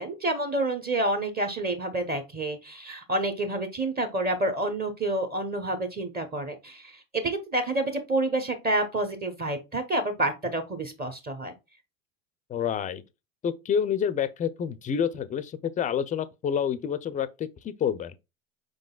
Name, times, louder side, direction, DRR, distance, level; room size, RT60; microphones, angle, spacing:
voice 1, 0.0-11.5, right 2 dB, 25° right, 0.9 m, -28 dB
voice 2, 12.5-13.0 13.4-18.2, left 8 dB, 20° left, 0.4 m, -28 dB
4.9 x 3.8 x 2.3 m
hypercardioid pair, 80°, 38 cm